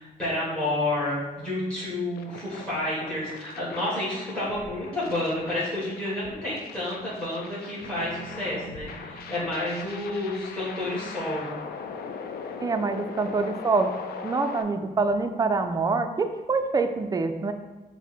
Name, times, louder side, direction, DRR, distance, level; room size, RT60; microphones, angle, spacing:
voice 1, 0.0-11.5, left 1 dB, 5° left, -10 dB, 1.4 m, -30 dB
sound 1, 2.2-14.6, left 5 dB, 85° left, 0.4 m, -40 dB
sound 2, 7.8-11.8, right 3 dB, 55° left, 1.1 m, -48 dB
voice 2, 12.6-13.9 14.2-17.5, right 4 dB, 25° right, 7 dB, 0.3 m, -25 dB
5.7 x 2.0 x 4.4 m, 1.2 s
cardioid pair, 115°, 16 cm